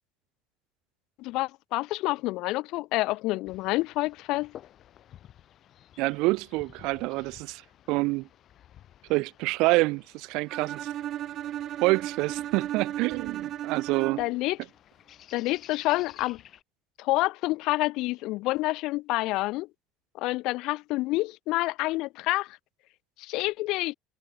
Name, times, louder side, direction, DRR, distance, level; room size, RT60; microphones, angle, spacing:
voice 1, 1.2-4.5 14.2-14.6 15.3-16.4 17.0-19.7 20.2-22.6 23.2-23.9, left 20 dB, 65° left, 1.2 m, -28 dB
sound 1, 3.4-16.6, left 11 dB, 45° left, 6.3 m, -54 dB
voice 2, 6.0-7.6 7.9-8.3 9.1-10.9 11.8-14.2, right 23 dB, 75° right, 0.6 m, -27 dB
Bowed string instrument, 10.5-14.5, right 12 dB, 45° right, 0.9 m, -35 dB
cardioid pair, 155°, 0 cm